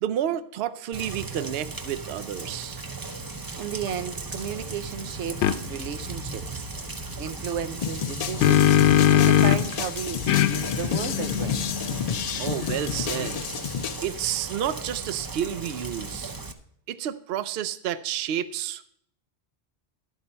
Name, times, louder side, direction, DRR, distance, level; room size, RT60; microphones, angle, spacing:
voice 1, 0.0-2.8 12.4-13.4 14.0-16.3 16.9-18.8, right 10 dB, 65° right, 0.8 m, -30 dB
Rain, 0.9-16.5, right 3 dB, 25° right, 0.5 m, -37 dB
voice 2, 3.6-6.7 7.2-11.6, right 7 dB, 90° right, 1.0 m, -34 dB
sound 1, 5.4-5.6 8.0-9.8 10.3-13.6, left 11 dB, 90° left, 0.9 m, -22 dB
sound 2, 7.8-14.0, left 8 dB, 65° left, 0.4 m, -31 dB
11.5 x 8.2 x 4.3 m
omnidirectional pair, 1.2 m